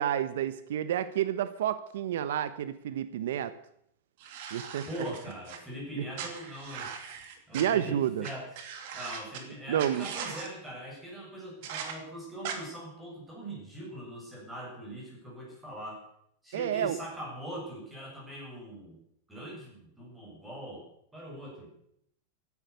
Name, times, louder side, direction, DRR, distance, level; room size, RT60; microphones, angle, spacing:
voice 1, 0.0-3.5 4.5-4.8 6.0-6.1 7.5-8.3 9.7-10.1 16.5-17.0, right 10 dB, 75° right, 13 dB, 1.0 m, -30 dB
sound 1, 4.2-5.6 6.1-7.6 8.2-8.3 8.5-9.4 9.8-10.5 11.6-11.9 12.4-12.6, right 7 dB, 55° right, 3.0 m, -39 dB
voice 2, 4.9-6.9 7.5-8.5 8.9-16.0 16.4-19.0 19.3-20.9 21.1-21.7, right 1 dB, 5° right, -3 dB, 7.6 m, -41 dB
16.0 x 12.0 x 6.9 m, 0.73 s
supercardioid pair, 160°, 0 cm